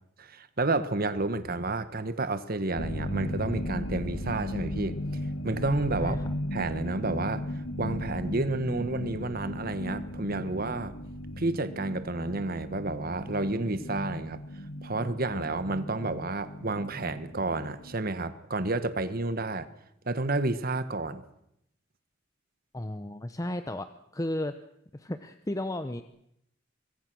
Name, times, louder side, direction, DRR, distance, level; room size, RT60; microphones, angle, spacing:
voice 1, 0.3-6.2 6.5-11.0 11.4-14.4 14.8-19.7 20.0-21.2, right 2 dB, 50° right, 12 dB, 1.4 m, -30 dB
sound 1, 2.8-18.0, left 1 dB, 85° left, 1.4 m, -36 dB
voice 2, 22.7-24.6 24.9-26.0, left 1 dB, 15° left, 10 dB, 0.8 m, -34 dB
25.5 x 22.0 x 6.3 m, 0.77 s
head